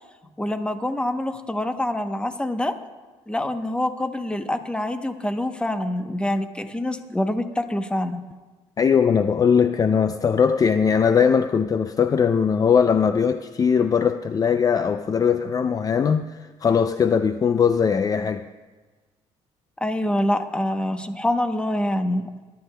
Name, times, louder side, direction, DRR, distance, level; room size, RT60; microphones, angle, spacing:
voice 1, 0.4-2.7 3.3-8.2 19.8-22.3, left 1 dB, 10° left, 0.9 m, -25 dB
voice 2, 8.8-18.5, left 6 dB, 30° left, 0.4 m, -20 dB
20.5 x 11.5 x 2.3 m
cardioid pair, 90°, 12 cm